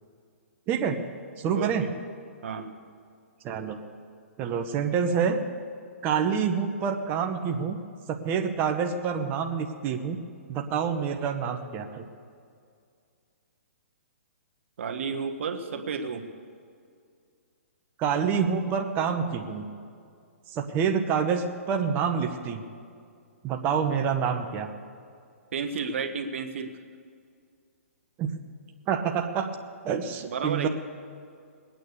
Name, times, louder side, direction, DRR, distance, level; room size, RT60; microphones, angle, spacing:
voice 1, 0.7-1.0 1.4-1.9 3.4-3.8 4.4-5.4 6.0-7.8 8.1-10.2 10.5-12.0 18.0-19.6 20.5-22.6 23.4-24.7 28.2-28.3 28.9-29.5 29.8-30.7, right 7 dB, 25° right, 4 dB, 1.0 m, -27 dB
voice 2, 1.5-1.9 2.4-2.7 14.8-16.3 25.5-26.7 30.3-30.7, right 5 dB, 60° right, 6 dB, 1.4 m, -32 dB
20.5 x 9.2 x 6.8 m, 2.3 s
hypercardioid pair, 140°, 8 cm